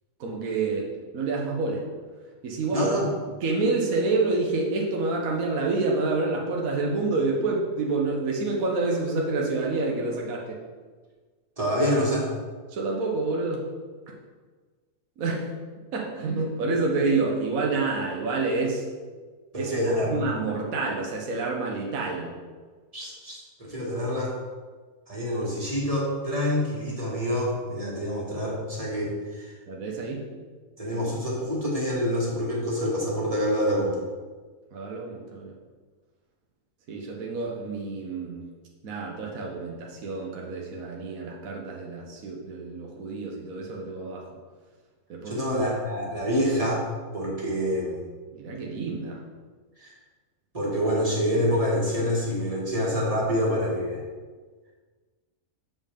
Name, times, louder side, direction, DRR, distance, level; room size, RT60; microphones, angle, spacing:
voice 1, 0.2-0.9 1.1-1.9 2.4-2.9 3.4-10.6 12.7-13.6 15.2-15.5 15.9-18.8 19.6-19.7 20.1-22.3 29.7-30.2 34.7-35.5 36.9-38.4 38.8-44.3 45.1-45.4 48.3-49.2, right 3 dB, 70° right, -1 dB, 1.4 m, -28 dB
voice 2, 2.7-3.1 11.6-12.3 19.5-20.2 22.9-24.3 25.1-29.5 30.8-34.0 45.2-46.8 47.1-48.0 49.8-49.9 50.5-54.0, equal, 25° right, -5 dB, 1.8 m, -26 dB
7.5 x 7.0 x 3.6 m, 1.4 s
omnidirectional pair, 1.6 m